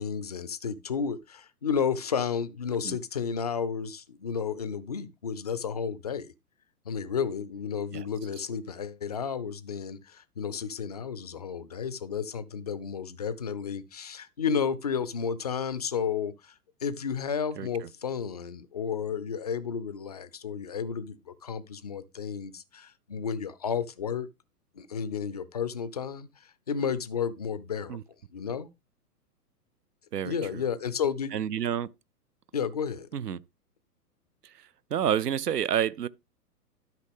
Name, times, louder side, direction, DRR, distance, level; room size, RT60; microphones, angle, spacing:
voice 1, 0.0-6.3 6.9-24.3 24.7-28.0 28.3-28.7 30.3-31.3 32.5-33.1, left 6 dB, 30° left, 0.4 m, -32 dB
voice 2, 31.3-31.9 33.1-33.4 34.9-36.1, right 9 dB, 75° right, 0.6 m, -28 dB
12.0 x 5.7 x 3.5 m
figure-of-eight pair, 110°, 47 cm